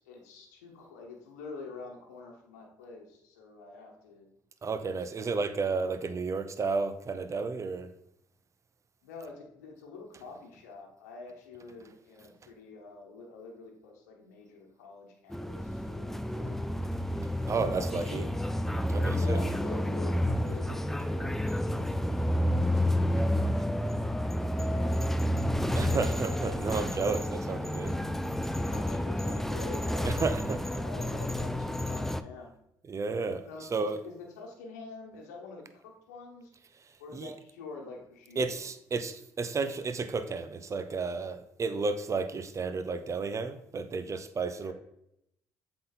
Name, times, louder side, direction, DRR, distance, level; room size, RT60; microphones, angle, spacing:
voice 1, 0.0-4.3 4.9-5.5 9.0-16.8 17.5-18.3 19.1-23.8 24.5-25.9 28.7-30.3 30.7-32.5 33.4-33.7 34.0-36.5 37.0-38.7 44.6-44.7, left 4 dB, 90° left, 1 dB, 1.1 m, -47 dB
voice 2, 4.6-7.9 17.5-18.3 18.9-19.4 25.7-28.1 30.0-30.6 32.9-34.0 37.1-37.3 38.4-44.7, right 4 dB, 35° right, 11 dB, 0.7 m, -32 dB
sound 1, 15.3-32.2, left 1 dB, 5° left, 0.4 m, -30 dB
7.6 x 4.0 x 4.0 m, 0.79 s
hypercardioid pair, 55°, 9 cm